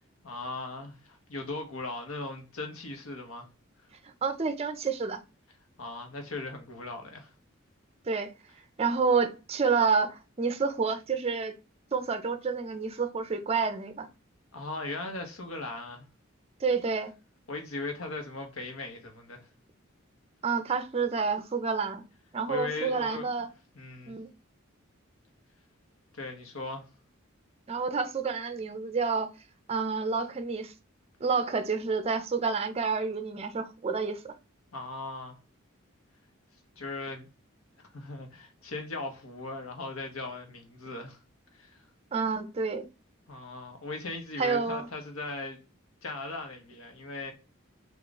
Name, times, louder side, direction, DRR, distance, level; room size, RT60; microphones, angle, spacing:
voice 1, 0.2-3.5 5.8-7.3 14.5-16.1 17.5-19.5 22.5-23.2 23.7-24.1 26.1-26.9 34.7-35.4 36.8-37.3 37.9-41.2 41.5-41.9 43.3-45.6 46.0-47.3, left 3 dB, 85° left, 1.0 m, -38 dB
voice 2, 4.0-5.2 8.1-8.3 8.8-11.6 11.9-14.1 16.6-17.1 20.4-22.0 22.3-23.5 24.1-24.3 27.7-29.3 29.7-30.7 31.2-34.3 42.1-42.9 44.4-44.9, right 5 dB, 30° right, 0.4 m, -29 dB
3.6 x 2.4 x 3.8 m
head